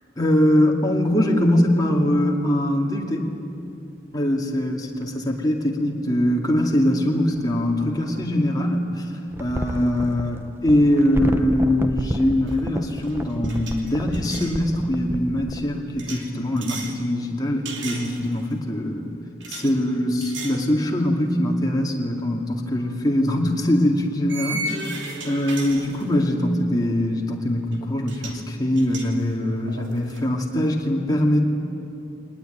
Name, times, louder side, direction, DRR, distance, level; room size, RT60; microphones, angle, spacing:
voice 1, 0.2-3.3 4.1-9.1 9.4-19.2 19.5-25.0 25.2-31.5, left 1 dB, 20° left, 0 dB, 2.4 m, -22 dB
sound 1, 5.0-5.1 7.3-8.5 9.3-15.6, equal, 15° right, 0.9 m, -30 dB
sound 2, 12.5-12.7 13.0-14.6 16.0-17.0 17.7-18.5 19.4-19.7 20.2-20.7 21.1-21.3 22.8-22.9 24.3-26.4 27.7-27.8 28.1-28.4 28.8-30.2, right 2 dB, 75° right, 2.7 m, -35 dB
23.0 x 19.5 x 9.2 m, 2.7 s
head